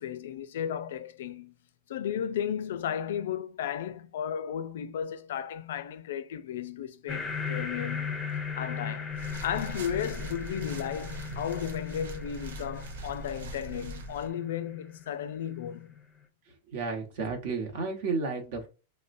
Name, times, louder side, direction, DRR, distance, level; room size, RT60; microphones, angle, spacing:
voice 1, 0.0-1.5 1.9-8.2 8.6-16.0, left 9 dB, 75° left, 0.4 m, -34 dB
sound 1, 7.1-16.0, left 6 dB, 10° left, 0.5 m, -38 dB
sound 2, 9.1-14.3, right 2 dB, 80° right, 0.5 m, -41 dB
voice 2, 16.7-18.7, right 4 dB, 60° right, 1.0 m, -32 dB
5.2 x 2.1 x 2.6 m
hypercardioid pair, 140°, 0 cm